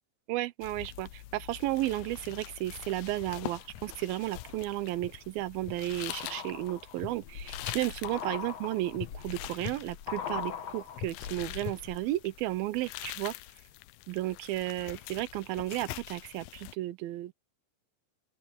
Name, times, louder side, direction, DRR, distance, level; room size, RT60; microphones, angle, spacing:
voice 1, 0.3-13.3 14.1-17.3, right 16 dB, 85° right, 2.7 m, -33 dB
sound 1, 0.6-16.8, left 16 dB, 80° left, 2.3 m, -45 dB
sound 2, 3.1-3.8 4.3-12.1 12.4-12.5, left 8 dB, 55° left, 2.3 m, -41 dB
open air
omnidirectional pair, 4.1 m